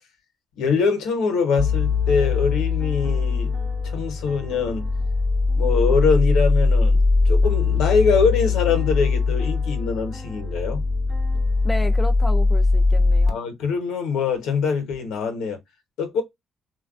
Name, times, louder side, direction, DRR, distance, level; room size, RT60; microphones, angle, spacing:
voice 1, 0.6-3.5 3.9-4.9 5.6-7.0 7.2-10.8 13.3-15.6 16.0-16.2, left 5 dB, 90° left, 0.9 m, -23 dB
sound 1, 1.6-13.3, left 3 dB, 15° right, 0.9 m, -21 dB
voice 2, 11.6-13.4, left 1 dB, 15° left, 0.4 m, -31 dB
3.2 x 2.2 x 2.3 m
cardioid pair, 90°, 0 cm